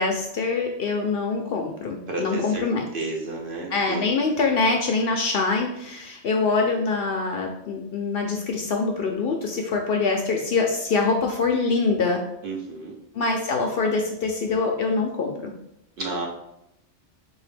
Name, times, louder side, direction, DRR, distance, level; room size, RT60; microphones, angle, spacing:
voice 1, 0.0-2.9 3.7-12.2 13.1-15.5, left 4 dB, 60° left, 2 dB, 0.6 m, -24 dB
voice 2, 2.1-2.6 2.9-4.0 12.4-13.0 16.0-16.3, right 2 dB, 55° right, 0 dB, 0.7 m, -31 dB
4.0 x 2.7 x 3.3 m, 0.79 s
omnidirectional pair, 1.3 m